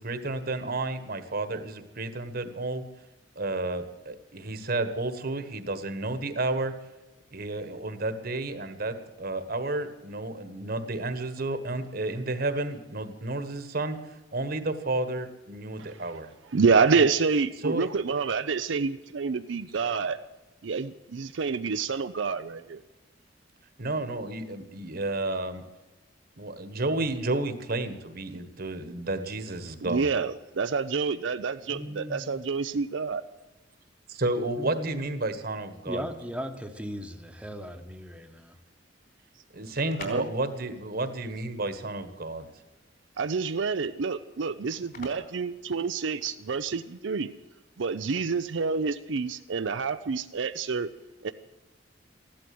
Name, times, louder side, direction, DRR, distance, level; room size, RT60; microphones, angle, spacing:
voice 1, 0.0-2.8 3.3-6.7 7.3-16.3 16.9-17.0 17.6-17.9 23.8-25.6 26.4-30.1 34.1-36.0 39.5-42.5, right 2 dB, 55° right, 10 dB, 1.5 m, -31 dB
voice 2, 16.5-20.2 20.6-22.8 29.8-33.2 40.0-40.3 43.2-47.3 47.8-50.9 51.2-51.3, right 5 dB, 75° right, 10 dB, 0.5 m, -28 dB
voice 3, 31.7-32.4 34.5-35.1 35.8-38.6, equal, 5° right, 5 dB, 1.1 m, -38 dB
sound 1, 39.5-46.4, left 3 dB, 55° left, 3.7 m, -48 dB
15.0 x 12.0 x 7.8 m, 1.1 s
head